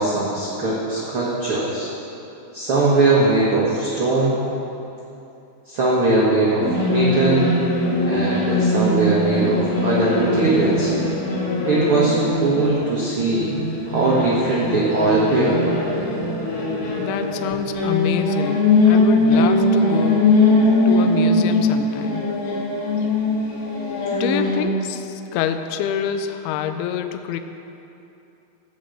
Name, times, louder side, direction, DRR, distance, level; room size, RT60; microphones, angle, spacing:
voice 1, 0.0-1.9 2.5-4.4 5.7-6.6 6.9-7.5 8.0-10.9 11.6-13.6 13.9-15.6 24.1-24.2, right 2 dB, 60° right, -6 dB, 1.4 m, -20 dB
sound 1, 6.6-24.6, left 2 dB, 65° left, 3.9 m, -21 dB
voice 2, 17.0-20.3 20.9-22.2 24.1-27.4, left 8 dB, 85° left, 8 dB, 2.5 m, -26 dB
13.5 x 5.5 x 7.8 m, 2.8 s
omnidirectional pair, 4.6 m